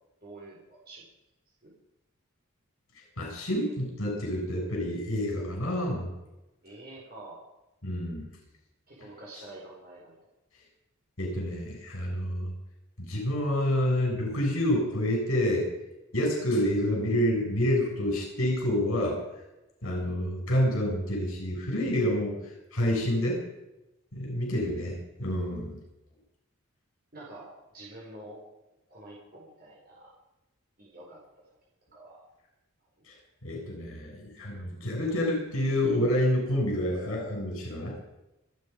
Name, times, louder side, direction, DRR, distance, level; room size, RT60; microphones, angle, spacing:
voice 1, 0.2-1.1 1.6-1.7 6.6-7.4 8.9-10.2 24.5-24.8 27.1-28.4 28.9-30.1 30.8-31.2 31.5-31.6 31.9-32.2 33.0-33.1, right 2 dB, 45° right, -5 dB, 4.8 m, -47 dB
voice 2, 3.2-6.1 7.8-8.3 11.2-12.5 13.0-15.7 16.1-19.2 19.8-22.3 22.7-23.4 24.1-24.9 25.2-25.8 33.1-33.2 33.4-37.9, left 1 dB, 75° left, -1 dB, 7.2 m, -28 dB
28.0 x 9.5 x 5.4 m, 0.94 s
head